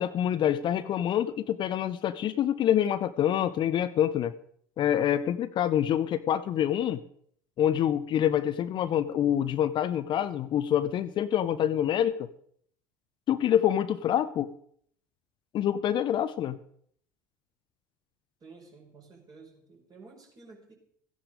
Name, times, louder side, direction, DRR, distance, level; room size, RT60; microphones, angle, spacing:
voice 1, 0.0-4.3 4.8-7.0 7.6-12.3 13.3-14.5 15.5-16.6, left 10 dB, 45° left, 12 dB, 0.7 m, -26 dB
voice 2, 18.4-20.7, right 4 dB, 35° right, 0 dB, 5.2 m, -52 dB
14.5 x 10.0 x 5.2 m, 0.63 s
hypercardioid pair, 70°, 11 cm